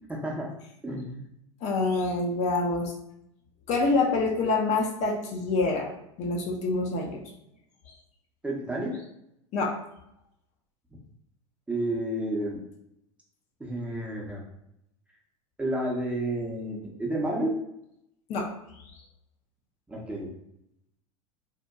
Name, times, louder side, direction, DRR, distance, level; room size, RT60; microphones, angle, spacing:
voice 1, 0.1-0.5 0.8-1.2 8.4-9.0 11.7-12.6 13.6-14.4 15.6-17.6 19.9-20.3, right 1 dB, 5° right, -2 dB, 0.6 m, -30 dB
voice 2, 1.6-2.9 3.7-5.9 6.2-7.2 7.9-8.0 9.5-9.8 18.3-18.5, left 3 dB, 45° left, 1 dB, 0.5 m, -26 dB
2.7 x 2.1 x 2.2 m, 0.80 s
hypercardioid pair, 90°, 17 cm